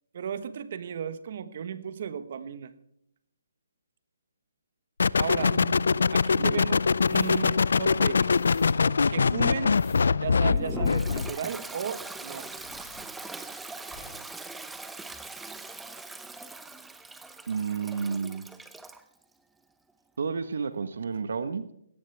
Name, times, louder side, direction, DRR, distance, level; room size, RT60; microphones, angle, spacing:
voice 1, 0.1-2.7 5.2-5.6 6.1-8.3 9.1-9.8 10.2-12.5, right 8 dB, 50° right, 13 dB, 1.4 m, -35 dB
sound 1, 5.0-11.3, left 5 dB, 75° left, 0.5 m, -23 dB
voice 2, 5.4-6.0 6.4-6.6 17.5-18.5 20.2-21.7, right 5 dB, 70° right, 11 dB, 1.3 m, -32 dB
sound 2, 7.0-13.5 13.8-14.2 14.5-14.7, left 4 dB, 20° left, 3.6 m, -50 dB
Toilet flush, 10.5-19.0, right 3 dB, 5° right, 0.8 m, -41 dB
18.0 x 17.5 x 3.5 m, 0.74 s
hypercardioid pair, 155°, 0 cm